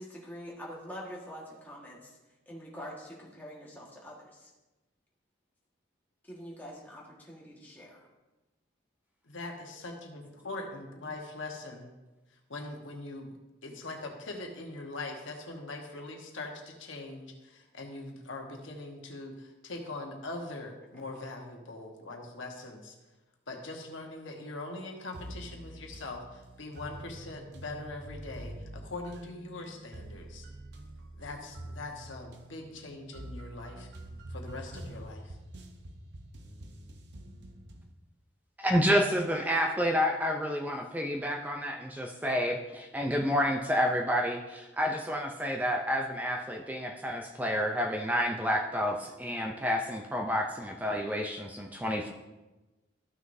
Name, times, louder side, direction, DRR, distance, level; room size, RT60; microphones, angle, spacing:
voice 1, 0.0-2.1 2.5-4.5 6.3-8.1, equal, 10° left, -4 dB, 1.5 m, -45 dB
voice 2, 9.2-11.9 12.3-13.3 13.6-22.9 23.5-30.5 31.2-33.9 34.3-35.4, left 2 dB, 80° left, 2 dB, 1.3 m, -42 dB
sound 1, 25.1-37.9, right 1 dB, 60° right, 0.8 m, -46 dB
voice 3, 38.6-52.1, equal, 10° right, 2 dB, 0.4 m, -29 dB
13.5 x 6.2 x 2.7 m, 1.1 s
head